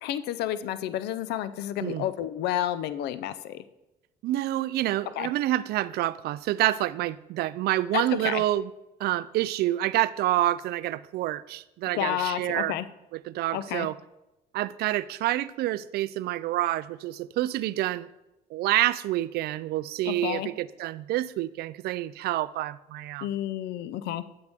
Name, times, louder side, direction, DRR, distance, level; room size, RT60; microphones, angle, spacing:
voice 1, 0.0-3.6 5.2-5.3 7.9-8.4 11.9-12.9 13.5-13.9 20.1-20.5 23.2-24.2, left 12 dB, 80° left, 14 dB, 0.5 m, -30 dB
voice 2, 4.2-8.7 9.0-12.8 13.1-14.0 14.5-18.1 18.5-23.3, right 15 dB, 70° right, 18 dB, 0.4 m, -28 dB
7.9 x 7.9 x 3.5 m, 0.95 s
cardioid pair, 110°, 17 cm